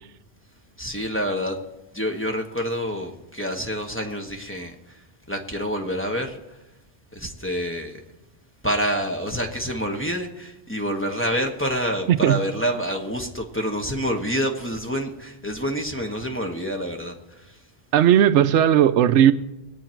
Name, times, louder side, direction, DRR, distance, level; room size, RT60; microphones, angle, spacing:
voice 1, 0.8-1.6 1.9-5.0 5.3-6.6 7.1-8.0 8.6-17.6, equal, 10° left, 1 dB, 1.2 m, -27 dB
voice 2, 12.1-12.4 17.9-19.3, right 10 dB, 85° right, 13 dB, 0.9 m, -16 dB
20.5 x 8.7 x 4.5 m, 0.94 s
omnidirectional pair, 1.2 m